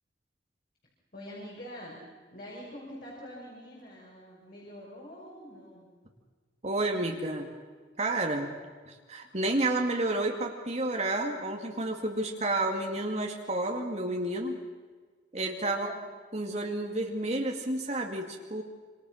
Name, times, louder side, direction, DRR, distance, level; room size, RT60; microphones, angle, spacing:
voice 1, 1.1-2.0 2.3-5.9 15.7-16.0, equal, 50° left, -4 dB, 6.2 m, -45 dB
voice 2, 6.6-7.5 8.0-8.5 8.9-14.6 15.3-15.9 16.3-18.6, right 2 dB, 35° right, 2 dB, 2.2 m, -30 dB
27.0 x 27.0 x 6.5 m, 1.5 s
head